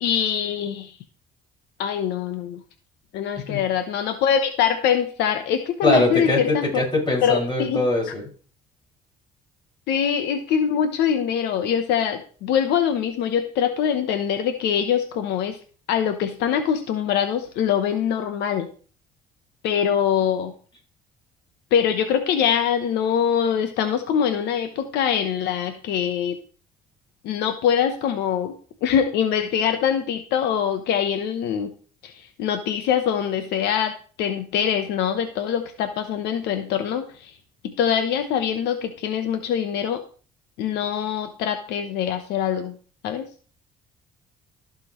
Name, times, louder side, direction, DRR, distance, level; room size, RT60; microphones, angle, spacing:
voice 1, 0.0-1.0 1.8-2.6 3.1-6.8 7.2-7.8 9.9-15.6 15.9-18.7 19.6-20.5 21.7-26.4 27.2-28.5 28.8-31.7 32.0-37.3 37.6-40.0 40.6-42.8 43.0-43.3, left 8 dB, 85° left, 8 dB, 1.0 m, -23 dB
voice 2, 5.8-8.2, left 2 dB, 30° left, -3 dB, 5.6 m, -22 dB
14.5 x 6.1 x 3.1 m, 0.41 s
cardioid pair, 110°, 17 cm